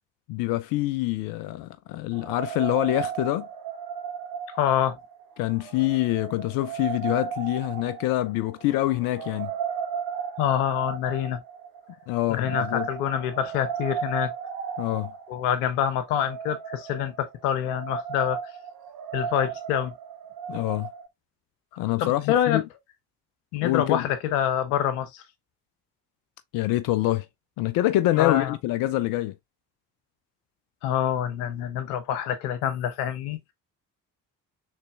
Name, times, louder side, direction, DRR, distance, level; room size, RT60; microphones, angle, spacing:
voice 1, 0.3-3.5 5.4-9.5 12.1-12.9 14.8-15.1 20.5-20.9 21.8-22.6 23.6-24.1 26.5-27.3 27.6-29.3, left 16 dB, 45° left, 0.5 m, -25 dB
sound 1, 2.1-21.1, right 7 dB, 45° right, 1.1 m, -35 dB
voice 2, 4.5-5.0 10.4-11.4 12.3-14.3 15.3-18.4 19.1-19.9 22.0-22.6 23.5-25.2 28.2-28.6 30.8-33.5, left 10 dB, 65° left, 0.9 m, -26 dB
6.5 x 3.2 x 2.3 m
figure-of-eight pair, 45°, 49 cm